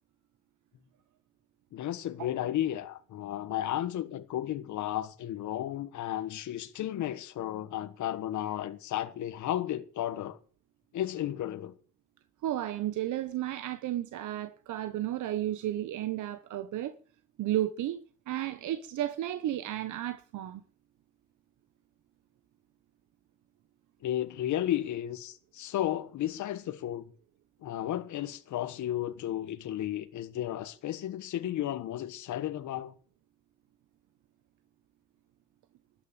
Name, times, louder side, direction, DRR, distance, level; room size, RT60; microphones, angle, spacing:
voice 1, 1.7-10.4 10.9-11.7 24.0-27.0 27.6-32.9, left 12 dB, 75° left, 1.3 m, -33 dB
voice 2, 12.4-16.9 17.4-18.0 18.3-20.6, right 13 dB, 80° right, 1.1 m, -33 dB
13.5 x 9.5 x 8.9 m
cardioid pair, 90°, 30 cm